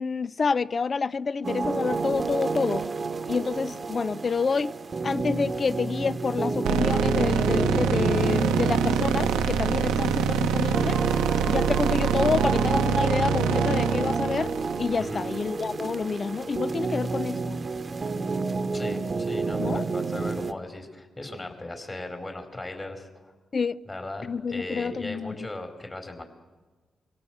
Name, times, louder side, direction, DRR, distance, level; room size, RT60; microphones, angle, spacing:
voice 1, 0.0-2.8 3.3-4.7 5.0-11.0 11.5-14.5 14.8-17.6 19.6-19.9 23.5-23.8 24.2-25.3, left 5 dB, 50° left, 0.6 m, -28 dB
sound 1, 1.4-20.5, right 4 dB, 45° right, 1.0 m, -30 dB
sound 2, 6.6-15.8, right 6 dB, 90° right, 0.9 m, -25 dB
voice 2, 15.0-15.3 16.9-17.0 18.5-23.3 23.9-26.2, left 2 dB, 30° left, 4.5 m, -38 dB
24.0 x 17.0 x 7.8 m
supercardioid pair, 45°, 0 cm